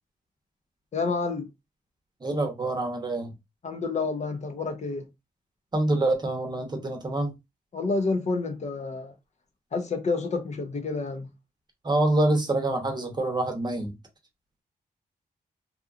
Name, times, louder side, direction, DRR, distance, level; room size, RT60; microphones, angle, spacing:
voice 1, 0.9-1.5 3.6-5.1 7.7-9.1 9.7-11.3, left 3 dB, 50° left, 0.6 m, -29 dB
voice 2, 2.2-3.3 5.7-7.3 11.8-13.9, right 2 dB, 25° right, 0.8 m, -26 dB
2.8 x 2.3 x 2.4 m
cardioid pair, 95°, 16 cm